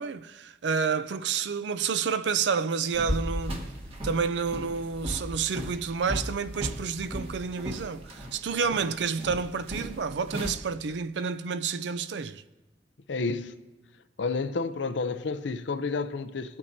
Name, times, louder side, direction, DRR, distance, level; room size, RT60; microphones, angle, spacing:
voice 1, 0.0-3.6 4.0-12.4, right 5 dB, 75° right, 0.4 m, -29 dB
sound 1, 2.9-10.5, equal, 35° right, 1.3 m, -36 dB
voice 2, 13.1-13.6 14.2-16.6, left 4 dB, 80° left, 0.6 m, -30 dB
20.5 x 8.7 x 2.7 m
head